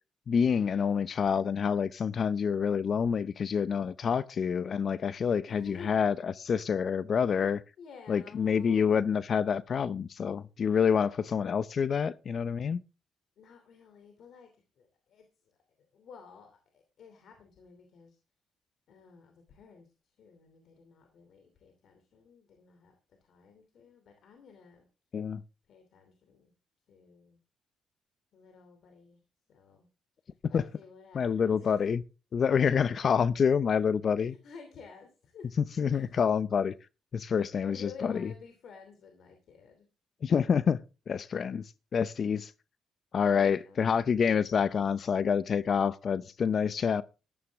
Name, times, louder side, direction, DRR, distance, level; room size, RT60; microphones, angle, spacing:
voice 1, 0.3-7.6 8.1-12.8 25.1-25.4 30.5-30.6 31.1-32.0 32.3-34.4 35.6-36.7 37.1-38.3 40.2-40.8 41.1-41.6 41.9-42.5 43.1-47.0, left 6 dB, 50° left, 0.6 m, -27 dB
voice 2, 5.5-6.1 7.8-9.0 13.4-14.5 14.8-15.6 15.9-18.2 18.9-19.9 20.2-22.9 23.2-24.9 25.7-26.5 26.9-27.4 28.3-29.2 29.5-29.9 30.3-32.0 32.8-33.2 34.2-35.5 35.9-36.0 37.6-39.9 43.3-44.0, left 6 dB, 65° left, 2.8 m, -52 dB
13.0 x 12.5 x 3.5 m
cardioid pair, 90°, 0 cm